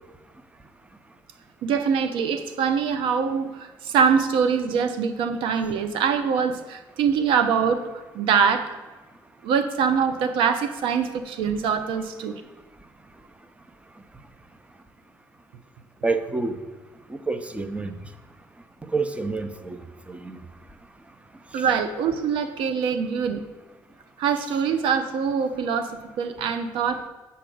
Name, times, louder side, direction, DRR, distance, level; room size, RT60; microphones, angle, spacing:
voice 1, 1.6-8.7 9.4-12.4 21.5-23.4 24.2-27.1, right 6 dB, 75° right, 8 dB, 0.7 m, -24 dB
voice 2, 16.0-16.6 17.1-17.9 18.9-19.8 20.1-20.4, right 3 dB, 15° right, 9 dB, 0.7 m, -27 dB
7.7 x 5.6 x 3.9 m, 1.2 s
supercardioid pair, 65°, 9 cm